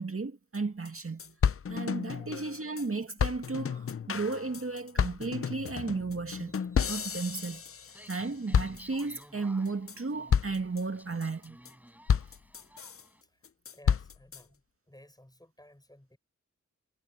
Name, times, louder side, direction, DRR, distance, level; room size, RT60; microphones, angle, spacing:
voice 1, 0.0-1.3 1.7-6.6 6.8-7.8 8.1-11.6, right 3 dB, 45° right, 2.2 m, -34 dB
sound 1, 0.5-0.6 0.9-1.0 1.2-2.9 3.2-8.2 8.5-9.2 9.7-10.0 10.3-10.8 11.2-11.7 12.1-13.0 13.4-14.4, left 7 dB, 45° left, 0.6 m, -31 dB
sound 2, 7.9-13.2, equal, 5° right, 7.1 m, -54 dB
voice 2, 13.7-16.2, left 1 dB, 15° left, 5.3 m, -57 dB
cardioid pair, 40°, 30 cm